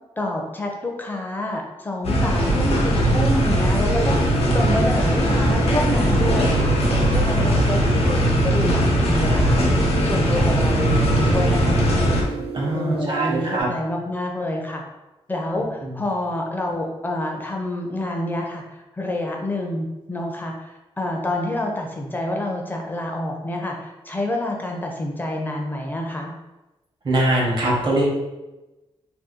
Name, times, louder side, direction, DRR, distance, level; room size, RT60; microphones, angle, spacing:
voice 1, 0.2-6.7 7.1-9.7 10.0-12.1 12.7-14.8 15.3-26.3, left 1 dB, 20° left, 1 dB, 0.4 m, -27 dB
sound 1, 2.0-12.2, equal, 80° left, 0.6 m, -19 dB
sound 2, 4.0-13.6, right 5 dB, 80° right, 0.4 m, -33 dB
voice 2, 12.5-13.7 15.8-16.0 27.0-28.1, right 1 dB, 50° right, -3 dB, 0.8 m, -22 dB
2.7 x 2.3 x 3.6 m, 1.0 s
wide cardioid pair, 165°, 10 cm